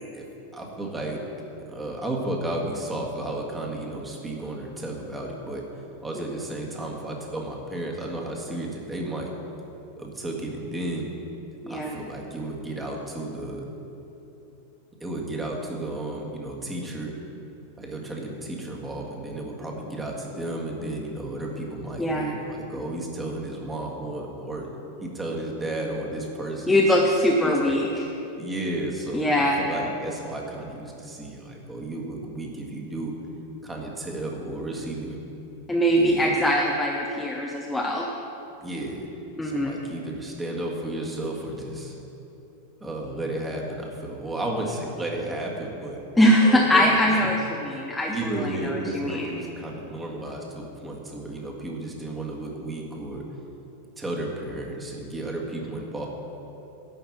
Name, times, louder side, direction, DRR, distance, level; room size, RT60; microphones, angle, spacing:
voice 1, 0.5-1.2 1.7-5.6 6.0-9.3 10.0-11.1 11.7-13.7 15.0-17.2 17.8-24.7 25.0-26.9 27.4-27.8 28.4-33.1 33.6-35.2 35.9-36.3 38.6-39.1 39.4-41.9 42.8-46.0 46.4-47.3 47.7-53.2 54.0-56.1, right 1 dB, 10° right, -1 dB, 1.8 m, -33 dB
voice 2, 26.7-27.9 29.1-29.6 35.7-38.1 39.4-39.7 46.1-49.3, equal, 5° left, -2 dB, 0.9 m, -22 dB
11.5 x 5.8 x 7.5 m, 3.0 s
figure-of-eight pair, 90°, 0 cm